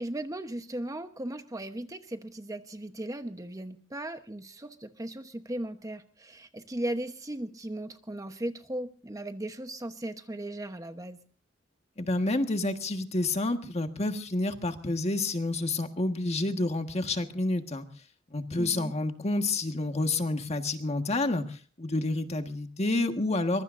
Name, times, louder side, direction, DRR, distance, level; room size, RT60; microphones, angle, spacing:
voice 1, 0.0-11.2 18.6-18.9, right 1 dB, 20° right, 8 dB, 1.0 m, -37 dB
voice 2, 12.0-17.9 18.3-23.6, left 2 dB, 35° left, 6 dB, 1.5 m, -29 dB
24.0 x 22.0 x 2.6 m, 0.39 s
head